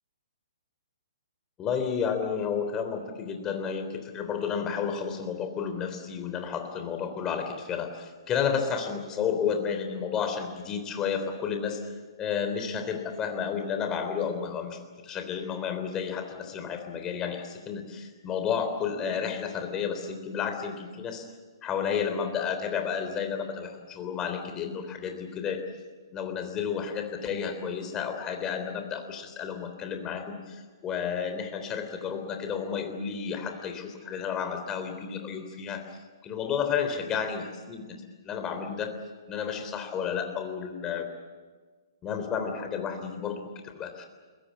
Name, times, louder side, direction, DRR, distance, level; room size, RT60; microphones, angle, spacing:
voice 1, 1.6-21.3 21.6-25.6 26.1-38.9 39.3-41.1 42.0-44.1, left 7 dB, 20° left, 7 dB, 3.5 m, -32 dB
22.0 x 21.5 x 8.5 m, 1.4 s
hypercardioid pair, 130°, 3 cm